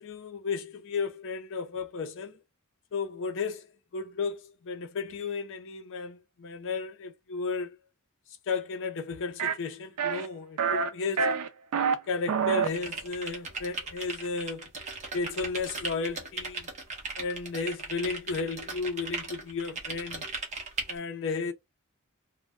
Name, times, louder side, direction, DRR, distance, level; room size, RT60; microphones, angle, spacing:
voice 1, 0.0-2.4 2.9-7.8 8.5-11.3 12.1-14.7 15.1-16.7 17.2-20.3 20.9-21.5, left 4 dB, 60° left, 0.5 m, -34 dB
sound 1, 9.4-9.6 10.0-10.3 10.6-10.9 11.2-12.0 12.3-12.7, right 6 dB, 80° right, 0.4 m, -26 dB
sound 2, 12.6-21.0, right 3 dB, 35° right, 0.7 m, -37 dB
2.1 x 2.1 x 3.4 m
head